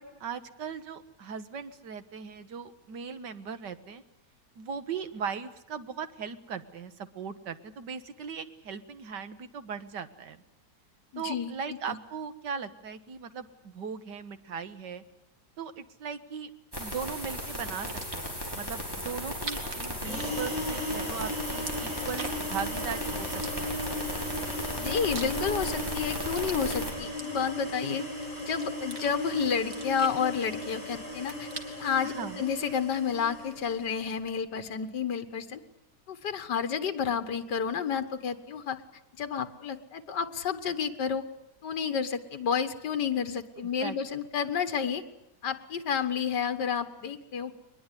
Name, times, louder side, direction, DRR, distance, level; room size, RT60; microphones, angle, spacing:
voice 1, 0.0-4.0 4.6-10.4 11.2-15.0 15.6-16.5 16.8-23.9 32.0-32.5 43.6-44.0, right 6 dB, 80° right, 11 dB, 2.0 m, -39 dB
voice 2, 11.1-12.0 24.8-28.0 28.4-31.5 31.8-35.6 36.1-38.8 39.2-41.3 41.6-45.0 45.4-47.6, left 7 dB, 80° left, 9 dB, 2.0 m, -30 dB
sound 1, 16.7-26.9, equal, 15° right, 5.4 m, -36 dB
sound 2, 17.9-18.4 19.2-20.9 21.2-22.6 23.3-24.1 24.6-25.7 26.0-27.7 28.2-29.1 29.5-30.8 31.1-32.0, right 3 dB, 50° right, 2.8 m, -43 dB
sound 3, 20.0-33.9, left 1 dB, 50° left, 8.2 m, -37 dB
22.5 x 21.0 x 9.9 m, 0.81 s
omnidirectional pair, 1.8 m